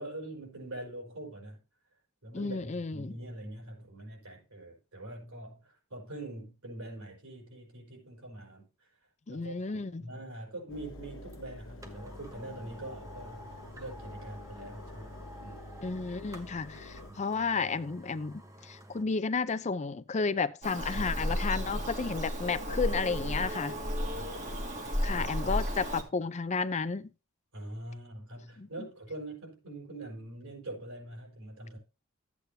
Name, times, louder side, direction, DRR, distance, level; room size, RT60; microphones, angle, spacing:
voice 1, 0.0-1.6 2.2-8.9 9.3-9.7 10.0-15.1 15.4-15.7 17.1-17.2 21.7-21.8 24.1-24.6 25.1-25.3 27.5-31.8, right 1 dB, 90° right, 5.0 m, -44 dB
voice 2, 2.3-3.2 9.3-10.1 15.8-23.8 25.0-27.1 28.6-28.7, left 4 dB, 30° left, 0.5 m, -32 dB
Engine, 10.7-17.1, left 1 dB, 65° left, 1.2 m, -48 dB
sound 1, 11.3-11.4 11.8-19.1 19.5-19.6, equal, 15° right, 1.1 m, -49 dB
Bird vocalization bird call bird song, 20.6-26.0, equal, 35° right, 2.1 m, -33 dB
13.0 x 8.3 x 2.8 m
head